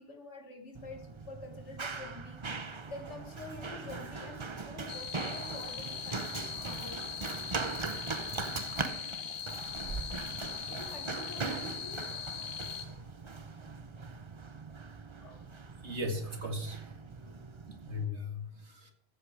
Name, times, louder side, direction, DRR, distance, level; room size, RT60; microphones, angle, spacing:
voice 1, 0.0-7.1 10.7-13.2 15.2-15.5 16.7-16.8 17.2-17.4, left 2 dB, 80° left, 5 dB, 1.9 m, -48 dB
Run, 0.7-18.0, right 4 dB, 30° right, 0.7 m, -40 dB
sound 1, 4.9-12.9, left 8 dB, 60° left, 1.6 m, -41 dB
voice 2, 15.8-16.9 17.7-18.9, left 2 dB, 75° right, 5 dB, 2.4 m, -37 dB
14.0 x 8.2 x 4.9 m, 0.65 s
omnidirectional pair, 1.2 m